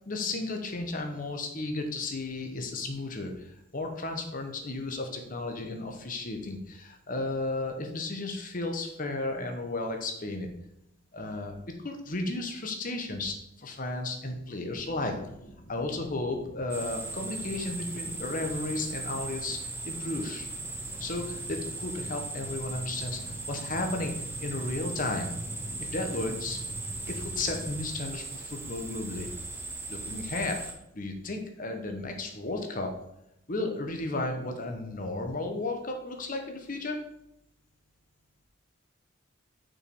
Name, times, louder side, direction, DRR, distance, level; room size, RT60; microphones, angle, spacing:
voice 1, 0.1-10.5 11.1-11.5 11.8-15.1 15.7-19.6 19.8-20.5 21.0-23.2 23.5-24.1 24.4-25.3 25.9-26.6 27.1-29.3 29.9-30.6 30.9-32.9 33.5-37.0, left 2 dB, 45° left, 4 dB, 1.0 m, -34 dB
sound 1, 14.7-27.8, equal, 90° left, 1.4 m, -45 dB
sound 2, 16.7-30.7, right 3 dB, 10° right, 0.8 m, -38 dB
6.0 x 5.1 x 4.7 m, 0.81 s
head